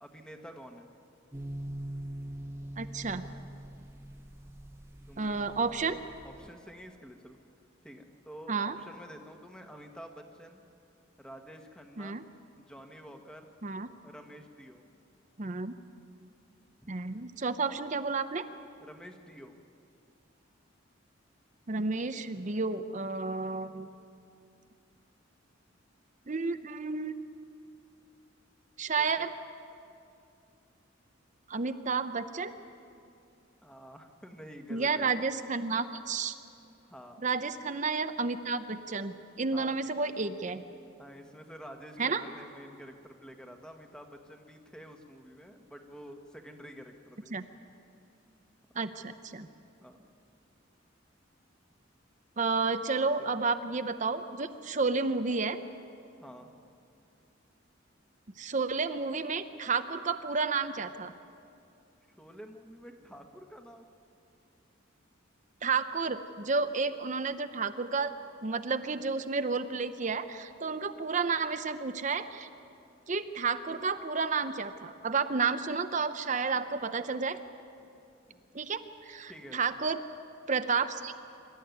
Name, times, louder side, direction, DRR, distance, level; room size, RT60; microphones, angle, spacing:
voice 1, 0.0-0.9 5.1-5.4 6.2-7.4 7.8-10.6 11.2-12.2 12.6-13.5 14.0-14.8 16.8-16.9 18.8-19.5 29.0-29.3 33.6-35.2 36.8-37.2 39.5-39.8 41.0-47.6 49.8-50.0 53.2-53.3 56.2-56.5 62.2-63.8 75.3-75.4 78.3-78.6 79.3-79.7, equal, 5° left, 4 dB, 1.5 m, -49 dB
sound 1, 1.3-6.5, right 1 dB, 15° right, 1.0 m, -43 dB
voice 2, 2.8-3.2 5.2-6.0 8.5-8.7 12.0-12.2 13.6-13.9 15.4-15.7 16.9-18.4 21.7-23.9 26.3-27.2 28.8-29.3 31.5-32.5 34.7-36.4 37.2-40.6 42.0-42.2 47.3-47.4 48.7-49.5 52.4-55.6 58.4-61.1 65.6-68.1 68.4-72.5 73.1-77.4 78.5-80.0 80.5-81.1, right 4 dB, 40° right, 10 dB, 0.7 m, -31 dB
25.0 x 13.0 x 9.4 m, 2.5 s
head